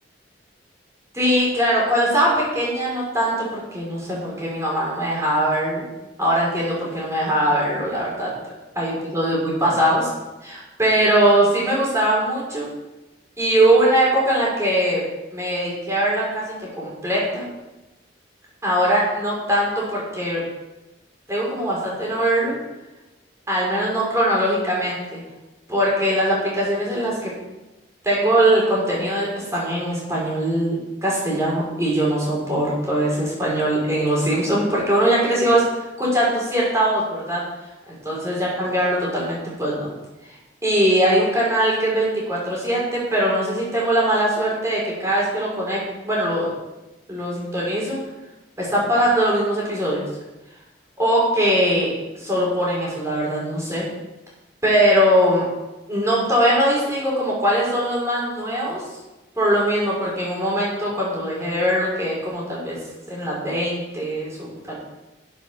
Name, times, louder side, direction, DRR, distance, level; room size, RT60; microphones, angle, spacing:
voice 1, 1.1-5.8 6.2-10.1 10.4-12.7 13.4-15.0 15.3-17.4 18.6-20.4 21.3-22.5 23.5-25.2 25.7-27.3 28.0-35.7 36.0-37.4 37.9-39.9 40.6-46.5 47.1-48.0 48.6-50.0 51.0-53.9 54.6-55.4 55.9-58.8 59.4-62.8 63.1-65.0, right 1 dB, 15° right, -5 dB, 5.4 m, -21 dB
12.0 x 8.1 x 7.0 m, 1.0 s
head